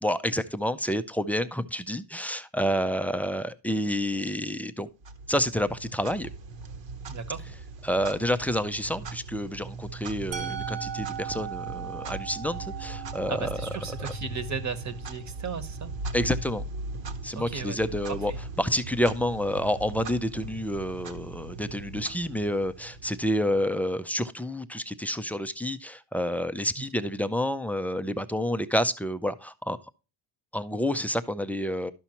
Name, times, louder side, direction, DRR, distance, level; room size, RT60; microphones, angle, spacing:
voice 1, 0.0-4.9 5.3-6.3 7.8-13.5 16.1-16.6 17.2-18.3 18.6-29.8 30.5-31.9, equal, 5° left, 0.3 m, -29 dB
Clock, 5.0-23.7, right 2 dB, 65° right, 1.2 m, -39 dB
voice 2, 7.1-7.5 13.3-15.9 17.3-17.8 18.3-18.4 26.8-26.9, right 6 dB, 35° right, 1.1 m, -35 dB
Musical instrument, 10.3-16.2, right 9 dB, 80° right, 1.5 m, -39 dB
12.0 x 5.7 x 2.9 m
cardioid pair, 120°, 47 cm